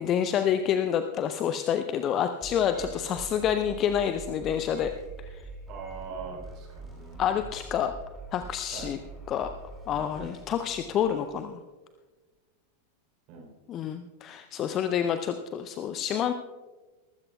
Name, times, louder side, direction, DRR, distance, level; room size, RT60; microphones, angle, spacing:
voice 1, 0.0-4.9 5.2-5.4 7.2-7.9 8.3-9.0 9.3-9.5 9.9-11.6 13.7-16.3, left 9 dB, 30° left, 9 dB, 0.6 m, -28 dB
sound 1, 2.4-11.4, right 3 dB, 5° left, 5.0 m, -44 dB
voice 2, 2.7-3.1 4.4-4.6 5.7-7.4 8.7-8.9 10.1-10.3 13.3-13.5, right 5 dB, 40° right, 1 dB, 3.4 m, -43 dB
20.5 x 14.5 x 2.3 m, 1.3 s
figure-of-eight pair, 90°, 0 cm